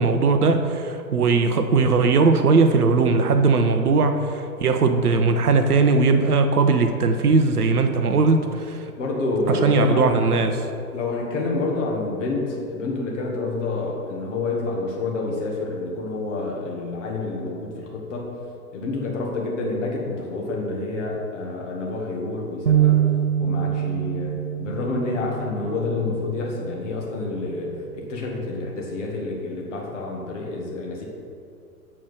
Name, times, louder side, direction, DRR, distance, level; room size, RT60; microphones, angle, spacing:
voice 1, 0.0-8.9 9.5-10.5, right 4 dB, 70° right, 7 dB, 0.8 m, -19 dB
voice 2, 9.0-10.3 10.9-18.3 18.7-23.0 23.4-31.1, left 3 dB, 50° left, -1 dB, 1.8 m, -28 dB
sound 1, 22.7-26.2, right 10 dB, 40° right, 0.4 m, -23 dB
7.4 x 4.5 x 6.5 m, 2.5 s
figure-of-eight pair, 115°, 46 cm